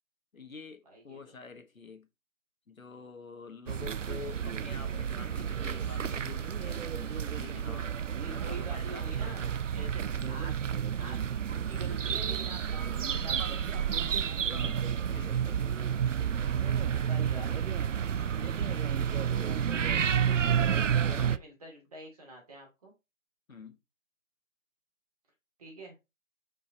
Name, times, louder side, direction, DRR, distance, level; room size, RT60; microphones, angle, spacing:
voice 1, 0.3-2.1 2.7-8.0 8.3-9.5 10.1-10.4 14.5-15.7 18.4-19.7 21.1-21.4 23.5-23.8, left 5 dB, 80° left, 1.6 m, -48 dB
voice 2, 0.8-1.2 8.2-9.4 9.7-10.5 11.0-13.6 16.8-17.7 20.7-22.9 25.6-25.9, right 1 dB, 30° right, 3.0 m, -47 dB
sound 1, 3.7-21.4, right 8 dB, 65° right, 0.5 m, -30 dB
5.6 x 5.2 x 4.2 m
figure-of-eight pair, 170°, 41 cm